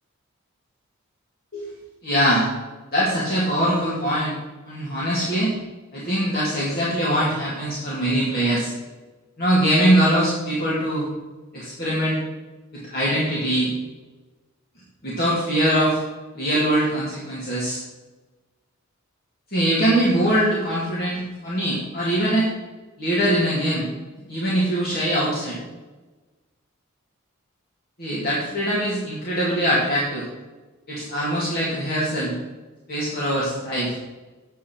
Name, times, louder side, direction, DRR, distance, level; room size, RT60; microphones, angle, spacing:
voice 1, 2.0-2.5 2.9-4.4 4.6-5.5 5.9-8.7 9.4-11.1 11.5-12.2 12.7-13.7 15.0-16.0 16.3-17.8 19.5-22.5 23.0-23.9 24.3-25.6 28.0-30.3 30.9-32.4 32.9-33.9, right 1 dB, 45° left, -7 dB, 2.2 m, -22 dB
8.5 x 7.5 x 4.4 m, 1.2 s
head